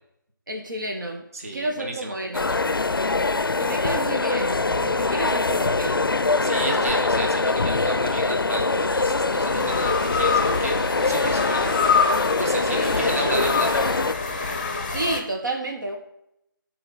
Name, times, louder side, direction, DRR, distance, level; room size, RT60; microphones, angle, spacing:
voice 1, 0.5-1.2 1.5-2.5 3.6-6.0 6.6-7.0 12.7-13.2 14.9-16.0, right 2 dB, 60° right, 2 dB, 1.2 m, -31 dB
voice 2, 1.3-2.2 6.4-13.9, right 2 dB, 40° right, 2 dB, 1.4 m, -32 dB
sound 1, 2.3-14.1, left 3 dB, 75° left, 0.5 m, -23 dB
sound 2, 4.3-5.8 7.7-15.2, left 5 dB, 25° left, 0.7 m, -27 dB
sound 3, 4.4-7.3, left 4 dB, ahead, 1.6 m, -44 dB
11.5 x 4.5 x 4.3 m, 0.80 s
figure-of-eight pair, 160°, 12 cm